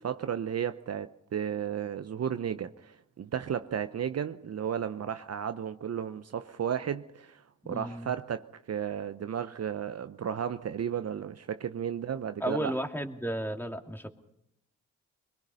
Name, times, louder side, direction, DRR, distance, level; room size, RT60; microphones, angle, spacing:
voice 1, 0.0-12.7, right 8 dB, 50° right, 0.8 m, -34 dB
voice 2, 7.6-8.1 12.4-14.1, right 1 dB, 5° left, 2.5 m, -33 dB
23.0 x 21.5 x 5.6 m
hypercardioid pair, 40°, 34 cm